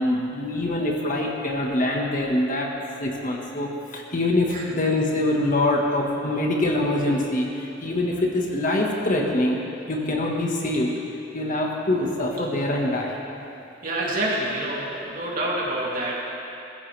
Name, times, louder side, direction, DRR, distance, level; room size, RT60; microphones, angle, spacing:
voice 1, 0.0-2.7 3.0-9.6 9.9-10.9 11.3-13.2, left 1 dB, 40° left, -1 dB, 1.6 m, -24 dB
voice 2, 13.8-16.1, right 1 dB, 45° right, -5 dB, 3.0 m, -27 dB
21.5 x 14.5 x 3.4 m, 2.7 s
head